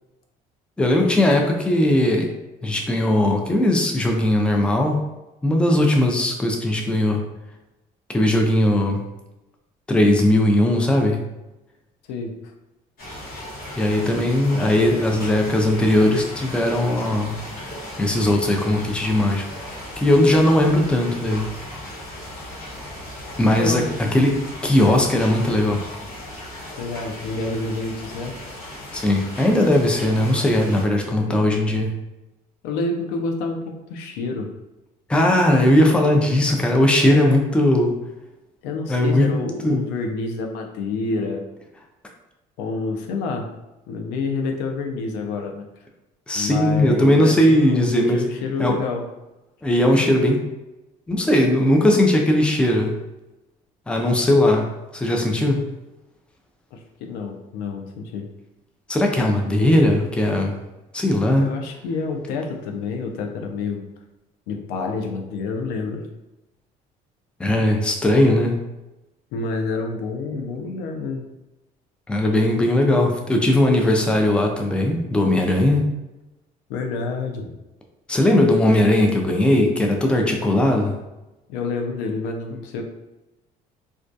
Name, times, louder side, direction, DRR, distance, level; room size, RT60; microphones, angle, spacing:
voice 1, 0.8-2.3 2.6-5.0 5.4-7.2 8.1-9.0 9.9-11.2 13.8-17.4 18.0-19.4 20.0-21.5 23.4-25.8 28.9-31.9 35.1-37.9 38.9-39.3 39.6-39.9 46.3-48.2 48.6-48.8 49.6-50.4 51.1-53.0 53.9-55.7 58.9-60.6 60.9-61.5 67.4-68.6 72.1-75.8 78.1-80.9, left 1 dB, 5° left, 2 dB, 0.3 m, -18 dB
sound 1, 13.0-30.8, left 1 dB, 55° left, 1.0 m, -36 dB
voice 2, 23.5-23.9 26.8-28.4 31.3-31.5 32.6-34.5 37.0-37.4 38.6-41.4 42.6-43.5 43.9-45.7 46.3-49.0 56.7-58.3 61.4-63.8 64.5-66.0 69.3-71.3 76.7-77.5 81.5-82.8, left 3 dB, 85° left, 3 dB, 0.4 m, -28 dB
2.2 x 2.2 x 2.5 m, 0.99 s
cardioid pair, 105°, 17 cm